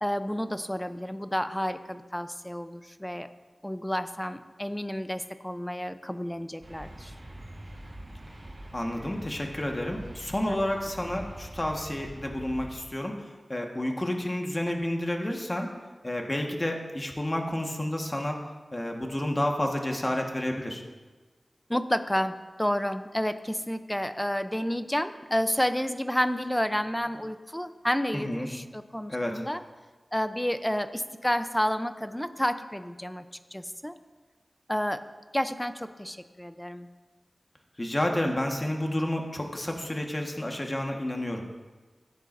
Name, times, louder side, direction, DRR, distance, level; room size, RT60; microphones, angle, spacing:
voice 1, 0.0-3.3 3.6-7.1 10.5-10.6 21.7-29.6 30.1-33.2 33.5-33.9 34.7-35.0 35.3-36.9, equal, 10° left, 10 dB, 0.6 m, -30 dB
sound 1, 6.6-12.7, right 1 dB, 55° right, 3.8 m, -44 dB
voice 2, 8.7-15.7 16.0-18.4 18.7-20.8 28.1-28.5 29.1-29.4 37.8-41.4, left 1 dB, 25° left, 2 dB, 1.5 m, -30 dB
16.0 x 9.0 x 2.6 m, 1.3 s
wide cardioid pair, 55°, 0 cm